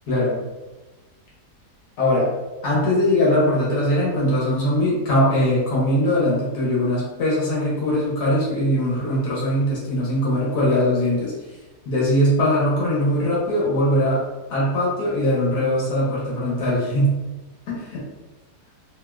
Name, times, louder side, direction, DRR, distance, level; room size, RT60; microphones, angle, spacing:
voice 1, 0.1-0.4 2.0-2.3 2.6-11.3 11.9-14.2 14.5-17.1 17.7-18.0, left 1 dB, 70° left, -6 dB, 1.5 m, -21 dB
3.5 x 2.4 x 2.3 m, 1.1 s
omnidirectional pair, 1.7 m